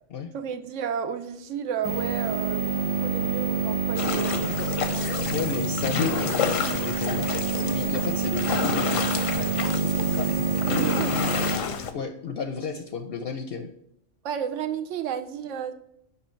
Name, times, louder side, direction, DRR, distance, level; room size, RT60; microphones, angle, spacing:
voice 1, 0.3-5.2 10.7-11.2 14.2-15.7, right 8 dB, 80° right, 8 dB, 0.9 m, -32 dB
sound 1, 1.8-11.6, right 5 dB, 15° right, 0.4 m, -27 dB
sound 2, 4.0-11.9, left 7 dB, 90° left, 1.0 m, -30 dB
voice 2, 5.3-9.2 11.9-13.7, left 5 dB, 65° left, 6 dB, 0.7 m, -33 dB
5.5 x 4.9 x 4.3 m, 0.72 s
omnidirectional pair, 1.3 m